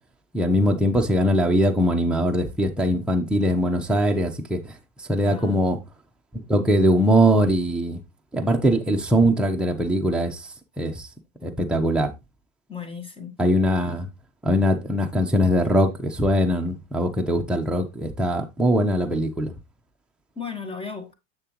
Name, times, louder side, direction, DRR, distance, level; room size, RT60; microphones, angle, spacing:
voice 1, 0.3-4.6 5.1-5.8 6.5-8.0 8.3-10.4 10.8-11.1 11.4-12.1 13.4-14.1 14.4-19.5, equal, ahead, 1.0 m, -21 dB
voice 2, 5.2-5.7 12.7-13.4 20.3-21.1, left 6 dB, 15° left, 1.7 m, -35 dB
7.2 x 6.6 x 3.1 m
supercardioid pair, 115°, 40 cm